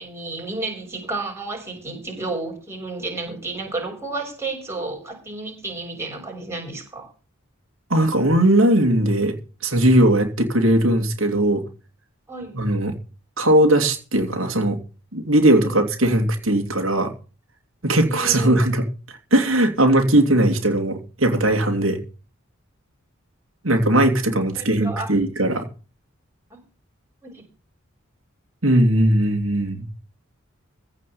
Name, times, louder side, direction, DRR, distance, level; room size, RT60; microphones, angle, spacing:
voice 1, 0.0-7.1 12.3-12.6 15.6-15.8 18.0-18.7 24.6-25.1 26.5-26.6 27.2-27.4, right 3 dB, 15° right, 0 dB, 6.5 m, -32 dB
voice 2, 7.9-9.4 9.6-11.6 12.5-12.9 13.4-14.8 15.1-17.1 17.8-22.0 23.6-25.7 28.6-29.9, right 1 dB, 75° right, 4 dB, 2.8 m, -19 dB
16.0 x 5.8 x 8.6 m, 0.35 s
head